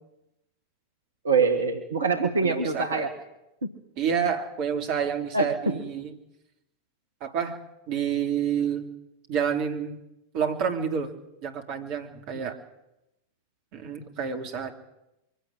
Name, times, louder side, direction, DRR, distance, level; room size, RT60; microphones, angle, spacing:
voice 1, 1.2-3.1 3.6-3.7 5.3-5.9 12.3-12.5, right 4 dB, 70° right, 7 dB, 1.7 m, -25 dB
voice 2, 2.4-3.1 4.0-6.1 7.2-7.6 7.9-8.9 9.3-10.0 10.3-11.1 11.4-12.6 13.7-14.7, right 7 dB, 45° right, 4 dB, 3.0 m, -29 dB
24.0 x 16.5 x 8.8 m, 0.90 s
figure-of-eight pair, 90°, 0 cm